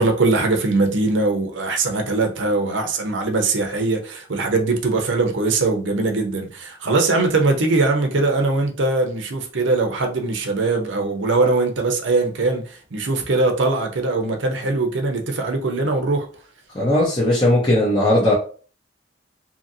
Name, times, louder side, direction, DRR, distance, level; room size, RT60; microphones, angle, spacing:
voice 1, 0.0-16.3, right 3 dB, 85° right, 0.6 m, -21 dB
voice 2, 16.7-18.3, left 1 dB, 30° left, 0.7 m, -17 dB
2.8 x 2.6 x 2.6 m
head